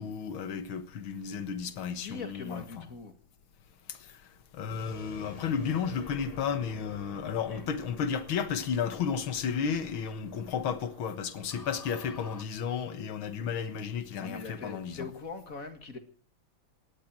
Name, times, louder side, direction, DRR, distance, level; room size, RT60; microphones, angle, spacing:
voice 1, 0.0-2.9 3.9-4.0 4.5-15.1, left 7 dB, 85° left, 2.2 m, -33 dB
voice 2, 2.0-3.1 7.5-7.6 14.2-16.0, left 4 dB, 45° left, 2.3 m, -41 dB
sound 1, 4.7-12.4, left 3 dB, 20° left, 1.3 m, -48 dB
19.0 x 12.5 x 6.1 m
omnidirectional pair, 2.2 m